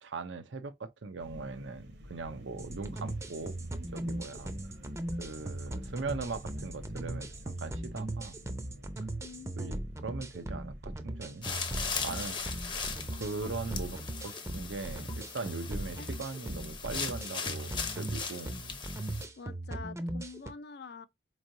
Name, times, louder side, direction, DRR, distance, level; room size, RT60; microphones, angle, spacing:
voice 1, 0.0-3.6 3.9-4.5 5.2-8.3 9.6-11.5 12.0-12.8 13.1-18.6, right 3 dB, 85° right, 0.6 m, -40 dB
sound 1, 1.2-13.8, equal, 65° right, 1.0 m, -50 dB
sound 2, 2.6-20.5, right 1 dB, 15° right, 0.6 m, -39 dB
voice 2, 9.2-9.8 16.0-16.3 19.4-21.1, left 4 dB, 60° left, 0.5 m, -46 dB
sound 3, 11.4-19.2, left 5 dB, 25° left, 0.7 m, -39 dB
4.4 x 3.1 x 2.6 m
head